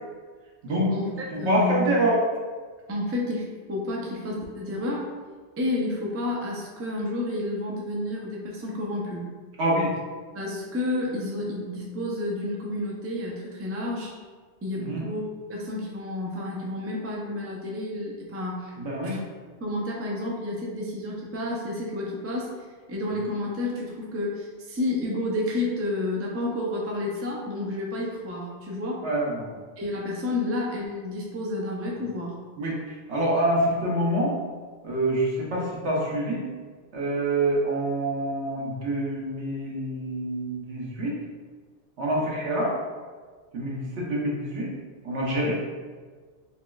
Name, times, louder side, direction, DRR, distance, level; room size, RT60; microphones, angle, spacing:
voice 1, 0.9-1.9 2.9-5.1 5.6-9.3 10.3-14.1 14.6-18.7 19.0-19.2 19.6-22.5 22.9-29.1 29.8-32.3, left 2 dB, 25° right, -3 dB, 0.3 m, -30 dB
voice 2, 1.4-2.1 9.6-9.9 14.8-15.0 18.8-19.2 29.0-29.5 32.6-32.8 33.1-34.3 34.8-36.5 36.9-41.1 42.0-42.7 43.5-44.7 45.0-45.6, right 1 dB, 80° right, -4 dB, 1.2 m, -26 dB
4.2 x 3.0 x 2.3 m, 1.5 s
omnidirectional pair, 1.2 m